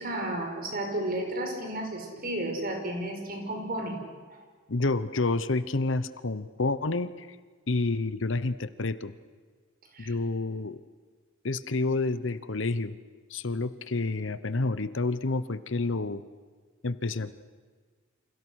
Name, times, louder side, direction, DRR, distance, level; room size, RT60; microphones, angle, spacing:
voice 1, 0.0-4.0 4.3-4.4 9.9-10.1, right 1 dB, 45° right, 3 dB, 5.4 m, -33 dB
voice 2, 4.7-7.4 7.7-9.1 10.0-10.8 11.4-12.9 13.3-16.2 16.8-17.3, left 3 dB, 65° left, 14 dB, 1.0 m, -29 dB
29.5 x 27.0 x 6.4 m, 1.5 s
head